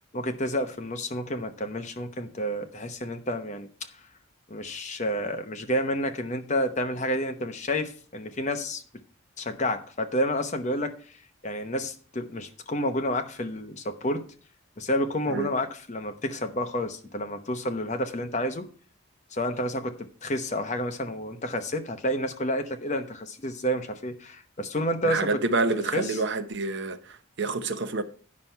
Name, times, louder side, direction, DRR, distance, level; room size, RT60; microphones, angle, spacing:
voice 1, 0.1-3.7 4.5-8.8 9.4-11.0 11.4-14.3 14.8-18.7 19.3-25.4 25.9-26.2, equal, 35° left, 0.9 m, -30 dB
voice 2, 25.0-28.0, right 3 dB, 55° right, 0.8 m, -28 dB
9.7 x 5.9 x 5.5 m
head